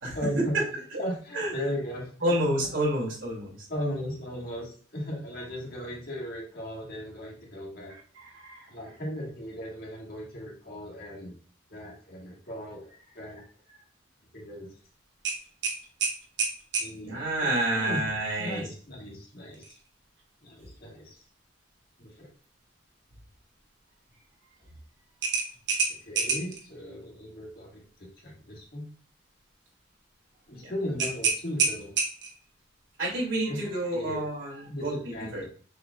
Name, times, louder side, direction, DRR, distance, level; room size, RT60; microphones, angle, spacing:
voice 1, 0.1-2.4 3.7-7.9 8.7-11.3 11.7-13.4 14.3-14.7 16.8-18.0 18.4-19.7 20.4-21.2 22.0-22.3 25.9-28.9 30.5-31.9 33.5-34.2 34.7-35.4, equal, 50° left, -3 dB, 1.6 m, -37 dB
voice 2, 2.2-3.6 7.9-8.7 17.0-18.6 30.6-30.7 33.0-35.4, right 1 dB, 80° right, -3 dB, 2.3 m, -29 dB
sound 1, 15.2-16.9 19.5-19.8 20.2-20.3 25.2-26.6 31.0-32.4, right 4 dB, 60° right, 1.0 m, -28 dB
6.4 x 3.2 x 2.3 m, 0.43 s
head